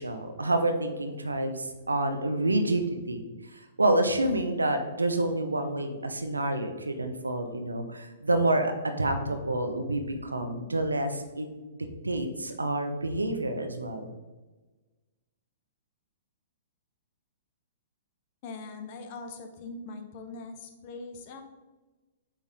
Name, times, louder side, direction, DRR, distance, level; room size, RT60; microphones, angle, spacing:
voice 1, 0.0-3.2 3.5-11.5 12.0-14.1, right 1 dB, 85° right, 6 dB, 0.8 m, -28 dB
voice 2, 18.4-21.4, left 3 dB, 45° left, 6 dB, 0.9 m, -41 dB
8.4 x 3.6 x 3.6 m, 1.2 s
figure-of-eight pair, 115°, 0 cm